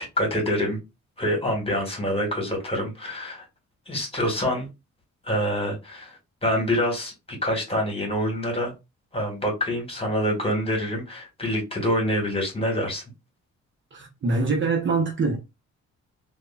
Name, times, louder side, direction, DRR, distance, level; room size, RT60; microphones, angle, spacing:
voice 1, 0.2-0.8 1.2-3.4 3.9-4.7 5.2-8.7 9.1-13.0, equal, 20° left, 1.5 m, -26 dB
voice 2, 13.9-15.4, right 3 dB, 40° right, 0.7 m, -24 dB
3.4 x 2.1 x 2.2 m
cardioid pair, 90°, 30 cm